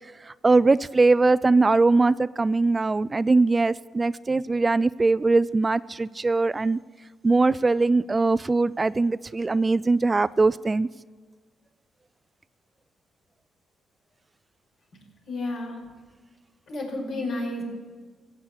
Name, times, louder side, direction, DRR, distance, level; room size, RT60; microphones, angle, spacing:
voice 1, 0.4-6.8 7.2-10.9, right 3 dB, 30° right, 0.3 m, -21 dB
voice 2, 15.3-15.8 16.7-17.6, left 2 dB, 70° left, 5.4 m, -31 dB
15.5 x 8.2 x 8.2 m
supercardioid pair, 65°, 0 cm